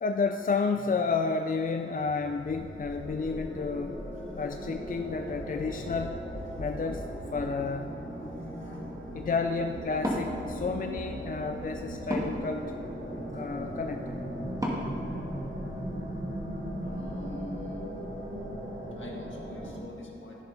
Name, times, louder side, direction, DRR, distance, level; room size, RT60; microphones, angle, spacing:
voice 1, 0.0-4.0 4.4-6.2 6.6-7.9 9.1-12.7 13.3-14.2, left 4 dB, 40° left, 4 dB, 0.4 m, -31 dB
sound 1, 1.8-19.8, equal, 65° right, 1.5 m, -38 dB
voice 2, 8.3-8.9 16.8-17.9 18.9-20.4, left 1 dB, 65° left, -1 dB, 1.6 m, -45 dB
Wood, 9.9-16.0, equal, 15° right, 1.5 m, -37 dB
14.0 x 7.1 x 2.7 m, 2.8 s
wide cardioid pair, 85°, 21 cm